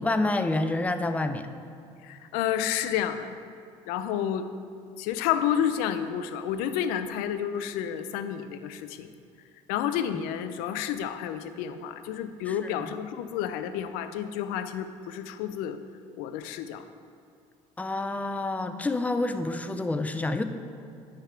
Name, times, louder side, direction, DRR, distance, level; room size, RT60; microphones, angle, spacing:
voice 1, 0.0-1.5 12.5-12.6 12.8-12.9 17.8-20.4, left 2 dB, 10° left, 9 dB, 0.4 m, -28 dB
voice 2, 2.0-3.4 3.9-4.5 5.0-9.1 9.7-15.8 16.2-16.8, left 9 dB, 80° left, 10 dB, 0.4 m, -30 dB
9.7 x 3.5 x 4.5 m, 2.4 s
supercardioid pair, 80°, 15 cm